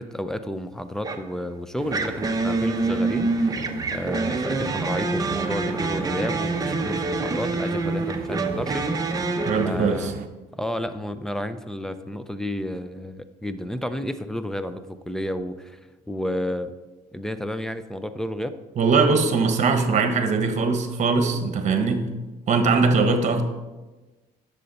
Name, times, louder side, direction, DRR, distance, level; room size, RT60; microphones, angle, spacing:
voice 1, 0.0-8.9 9.6-10.1 10.5-15.8 16.1-16.7 17.1-18.6, equal, 5° left, 11 dB, 0.5 m, -31 dB
sound 1, 1.0-1.3 1.9-9.7, right 3 dB, 20° right, 0.8 m, -26 dB
sound 2, 1.8-10.3, right 8 dB, 60° right, 0.7 m, -39 dB
voice 2, 9.5-10.1 18.8-22.1 22.5-23.4, right 4 dB, 45° right, 7 dB, 1.3 m, -21 dB
9.8 x 6.8 x 4.1 m, 1.2 s
cardioid pair, 110°, 17 cm